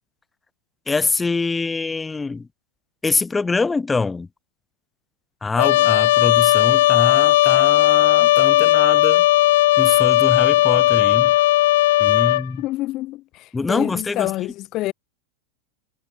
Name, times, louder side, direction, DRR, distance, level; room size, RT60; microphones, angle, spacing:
voice 1, 0.9-2.5 3.0-4.3 5.4-9.2 9.8-11.3 12.0-12.6 13.5-14.3, left 4 dB, 10° left, 2.6 m, -24 dB
Trumpet, 5.6-12.4, left 16 dB, 55° left, 0.5 m, -16 dB
voice 2, 12.6-14.9, left 17 dB, 35° left, 2.2 m, -27 dB
figure-of-eight pair, 90°, 0 cm